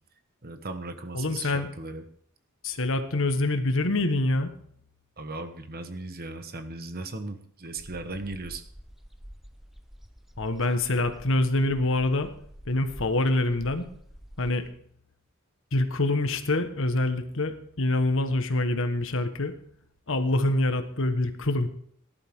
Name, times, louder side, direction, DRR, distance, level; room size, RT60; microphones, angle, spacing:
voice 1, 0.4-2.0 5.2-8.6, right 2 dB, 45° right, 8 dB, 1.3 m, -37 dB
voice 2, 1.1-1.7 2.6-4.5 10.4-12.3 12.7-13.8 14.4-14.6 15.7-19.5 20.1-21.7, left 2 dB, 65° left, 8 dB, 1.4 m, -25 dB
sound 1, 7.8-14.7, equal, ahead, 0.9 m, -48 dB
18.0 x 11.5 x 3.7 m, 0.62 s
head